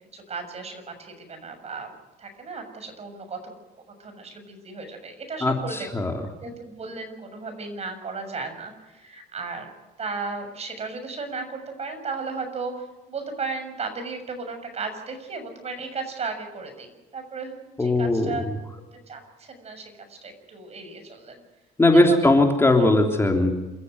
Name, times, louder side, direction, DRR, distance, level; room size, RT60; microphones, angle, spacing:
voice 1, 0.0-1.9 2.2-3.5 4.0-5.9 6.4-9.7 10.0-18.5 18.9-21.4 21.9-22.3 22.8-22.9, right 4 dB, 40° right, 6 dB, 6.9 m, -35 dB
voice 2, 5.4-6.1 17.8-18.4 21.8-23.5, left 2 dB, 15° left, 2 dB, 3.2 m, -19 dB
28.0 x 15.0 x 8.1 m, 1.1 s
cardioid pair, 110°, 17 cm